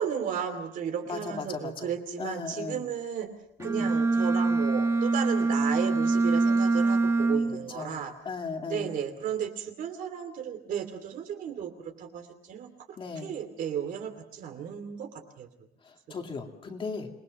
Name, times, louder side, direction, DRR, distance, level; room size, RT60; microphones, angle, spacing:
voice 1, 0.0-3.3 3.6-8.1 8.7-11.7 12.0-12.7 13.2-15.5, right 8 dB, 55° right, 8 dB, 2.7 m, -34 dB
voice 2, 1.1-1.9 2.2-2.8 3.6-3.9 7.7-9.0 13.0-13.3 15.8-17.1, left 4 dB, 30° left, 4 dB, 2.2 m, -37 dB
Bowed string instrument, 3.6-7.7, right 3 dB, 20° right, 1.6 m, -24 dB
27.5 x 20.5 x 6.4 m, 0.76 s
cardioid pair, 175°, 16 cm